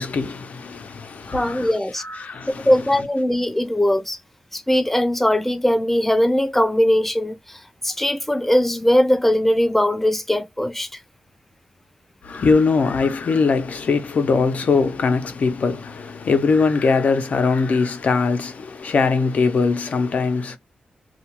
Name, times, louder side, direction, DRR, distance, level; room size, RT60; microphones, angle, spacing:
voice 1, 0.0-1.7 2.0-2.8 12.2-20.6, left 4 dB, 65° left, 0.7 m, -21 dB
voice 2, 1.3-2.0 2.6-4.2 4.5-10.9, left 1 dB, 5° left, 0.5 m, -20 dB
2.4 x 2.3 x 2.9 m
cardioid pair, 75°, 3 cm